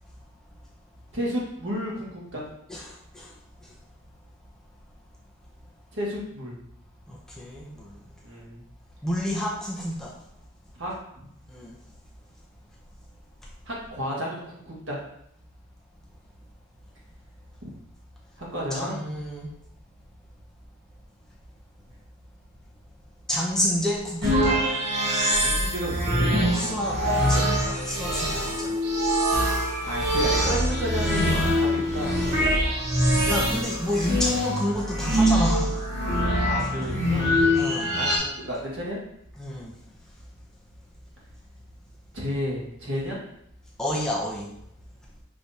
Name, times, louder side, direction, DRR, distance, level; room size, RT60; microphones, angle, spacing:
voice 1, 1.1-2.5 5.9-6.5 8.2-8.6 10.8-10.9 13.7-15.0 17.6-17.7 18.4-19.0 25.3-26.3 29.8-32.2 36.3-37.4 37.9-39.0 42.1-43.2, equal, 65° right, -5 dB, 1.7 m, -32 dB
voice 2, 2.7-3.3 3.6-3.7 7.1-8.0 9.0-10.2 11.5-11.8 18.7-19.5 23.3-24.7 26.5-28.9 33.3-35.8 36.8-36.9 37.5-38.0 39.4-39.7 43.8-44.5, equal, 5° left, -5 dB, 0.5 m, -29 dB
sound 1, 24.2-38.2, equal, 50° right, 1.1 m, -24 dB
5.9 x 3.3 x 2.7 m, 0.77 s
head